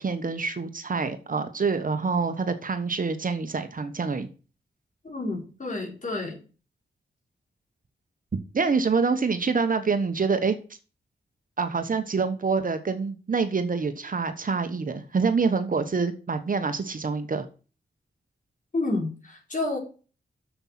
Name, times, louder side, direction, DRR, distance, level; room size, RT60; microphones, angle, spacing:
voice 1, 0.0-4.3 8.5-10.6 11.6-17.5, right 4 dB, 45° right, 9 dB, 1.2 m, -26 dB
voice 2, 5.0-6.4 18.7-19.8, left 2 dB, 45° left, 0 dB, 4.4 m, -29 dB
7.3 x 6.8 x 5.8 m, 0.35 s
cardioid pair, 60°, 19 cm